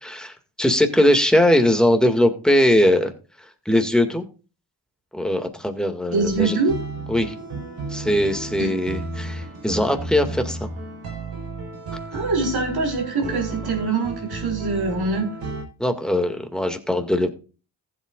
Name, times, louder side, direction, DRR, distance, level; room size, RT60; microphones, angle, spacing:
voice 1, 0.0-3.1 3.7-4.2 5.1-6.6 7.1-7.3 7.9-10.7 15.8-17.3, left 1 dB, ahead, 5 dB, 2.1 m, -20 dB
voice 2, 6.1-6.8 8.6-8.7 12.1-15.3, right 3 dB, 65° right, 0 dB, 4.3 m, -24 dB
sound 1, 6.2-15.6, right 3 dB, 90° right, 4.1 m, -33 dB
15.0 x 8.2 x 2.5 m, 0.35 s
supercardioid pair, 40°, 41 cm